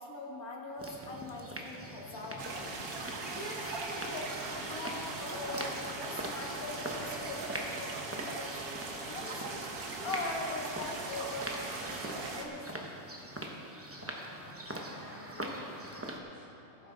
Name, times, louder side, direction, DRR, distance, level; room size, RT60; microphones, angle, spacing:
voice 1, 0.0-2.8 3.3-9.4 10.0-12.9, left 2 dB, 80° left, -1 dB, 1.9 m, -42 dB
sound 1, 0.8-16.2, right 1 dB, 10° right, 0.8 m, -43 dB
sound 2, 2.4-12.4, right 3 dB, 80° right, 1.6 m, -40 dB
voice 2, 14.0-16.9, equal, 50° left, -9 dB, 3.1 m, -56 dB
16.0 x 9.2 x 3.9 m, 2.8 s
omnidirectional pair, 1.5 m